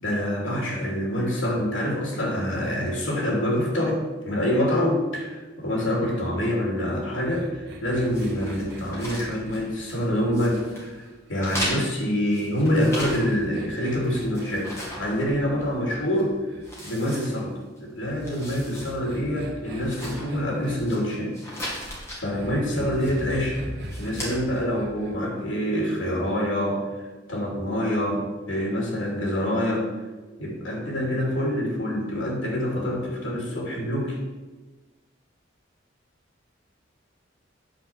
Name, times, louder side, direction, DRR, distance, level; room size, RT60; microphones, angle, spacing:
voice 1, 0.0-4.0 4.2-16.4 16.8-17.5 17.8-21.3 21.6-23.6 24.0-26.8 27.3-29.9 30.4-34.2, equal, 75° left, -2 dB, 3.1 m, -26 dB
sound 1, 7.2-11.6 12.5-16.7 18.0-20.8 22.3-25.1, equal, 60° right, 1.6 m, -41 dB
sound 2, 8.1-10.0 10.3-10.9 11.4-13.5 13.9-15.8 16.1-16.2 16.6-17.8 18.1-18.9 19.3-19.4 19.8-21.0 21.3-22.2 22.9-23.4 23.8-24.3, equal, 15° left, 2.6 m, -36 dB
9.2 x 4.5 x 7.4 m, 1.2 s
head